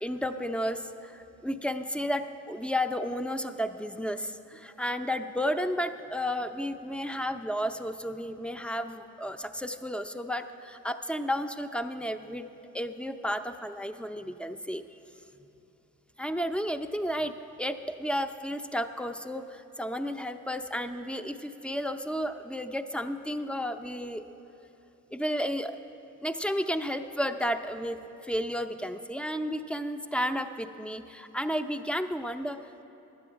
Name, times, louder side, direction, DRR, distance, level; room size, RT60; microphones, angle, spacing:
voice 1, 0.0-12.5 12.7-14.8 16.2-17.3 17.6-24.2 25.1-25.8 26.2-32.6, equal, 5° left, 8 dB, 0.5 m, -32 dB
9.8 x 7.8 x 8.7 m, 2.9 s
supercardioid pair, 75°, 35 cm